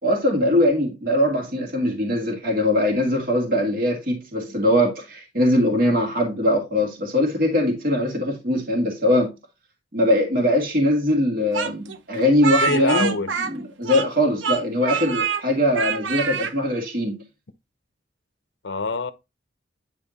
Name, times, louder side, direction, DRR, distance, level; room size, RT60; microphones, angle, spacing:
voice 1, 0.0-9.3 9.9-13.1 13.5-17.2, left 1 dB, 50° right, 2.1 m, -21 dB
Speech, 11.5-14.2 14.4-15.4 15.7-16.5, right 6 dB, 70° right, 0.8 m, -26 dB
voice 2, 12.6-13.4 18.6-19.1, left 4 dB, 65° left, 0.8 m, -24 dB
10.5 x 3.5 x 4.2 m
head